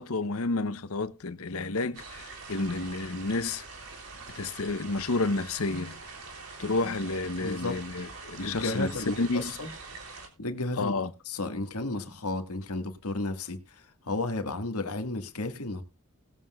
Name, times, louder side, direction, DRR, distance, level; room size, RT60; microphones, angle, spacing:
voice 1, 0.0-3.7 4.3-6.0 6.6-8.9 9.2-9.5 10.8-11.1, left 3 dB, 70° left, 0.8 m, -30 dB
sound 1, 1.9-10.3, right 4 dB, 75° right, 3.4 m, -44 dB
voice 2, 7.4-7.8 8.4-9.7 10.4-10.9 11.2-15.8, left 2 dB, 85° left, 1.7 m, -33 dB
20.0 x 7.5 x 2.3 m
head